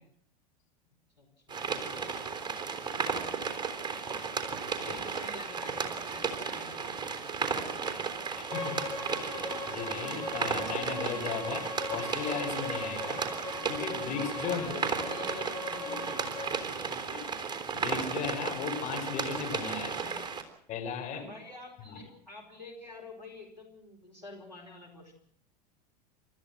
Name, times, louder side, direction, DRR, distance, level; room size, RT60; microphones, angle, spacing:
voice 1, 1.2-2.3 4.4-7.8 14.4-17.1 19.8-20.3 21.1-25.1, left 2 dB, 90° left, -1 dB, 5.3 m, -49 dB
sound 1, 1.5-20.4, right 5 dB, 20° right, 3.5 m, -34 dB
voice 2, 8.4-8.8 9.1-13.2 13.7-14.7 15.9-16.0 17.1-19.9 20.7-21.2 21.9-22.0, left 6 dB, 35° left, 2 dB, 5.6 m, -37 dB
Bowed string instrument, 8.5-16.5, left 3 dB, 15° left, 5.0 m, -40 dB
29.5 x 13.5 x 7.8 m, 0.64 s
figure-of-eight pair, 85°, 21 cm